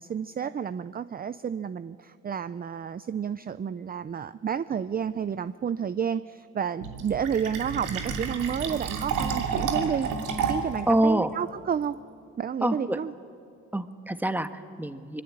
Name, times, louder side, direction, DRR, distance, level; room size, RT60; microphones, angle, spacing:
voice 1, 0.0-10.1 10.4-12.0 12.4-13.1, right 7 dB, 30° right, 14 dB, 0.5 m, -30 dB
Fill (with liquid), 6.8-10.8, right 6 dB, 90° right, 2.9 m, -30 dB
voice 2, 10.9-11.3 12.6-13.0 13.7-15.2, right 1 dB, 5° right, 8 dB, 1.4 m, -26 dB
24.5 x 22.0 x 8.8 m, 2.5 s
cardioid pair, 90°, 30 cm